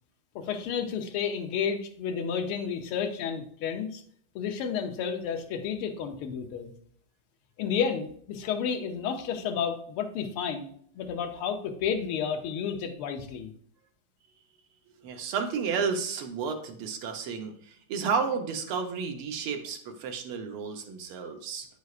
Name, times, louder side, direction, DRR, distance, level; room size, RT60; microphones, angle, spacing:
voice 1, 0.3-4.0 4.3-6.7 7.6-10.7 10.9-13.5, left 7 dB, 80° left, 6 dB, 1.7 m, -31 dB
voice 2, 15.0-21.7, right 5 dB, 80° right, 5 dB, 1.8 m, -32 dB
9.3 x 6.3 x 2.4 m, 0.62 s
omnidirectional pair, 2.3 m